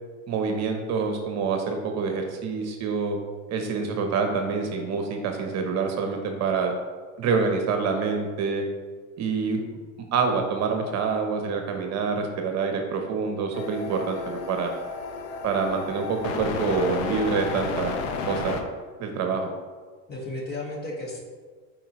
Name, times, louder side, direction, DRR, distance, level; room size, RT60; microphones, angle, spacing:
voice 1, 0.3-3.2 3.5-6.7 7.2-8.7 9.2-9.6 10.1-14.7 15.4-17.9 18.3-18.6 19.0-19.5, right 5 dB, 45° right, 4 dB, 1.0 m, -26 dB
sound 1, 13.5-18.6, left 4 dB, 75° left, 1.0 m, -32 dB
voice 2, 20.1-21.2, left 2 dB, 25° left, -1 dB, 1.6 m, -34 dB
9.1 x 4.6 x 3.1 m, 1.5 s
supercardioid pair, 120°, 38 cm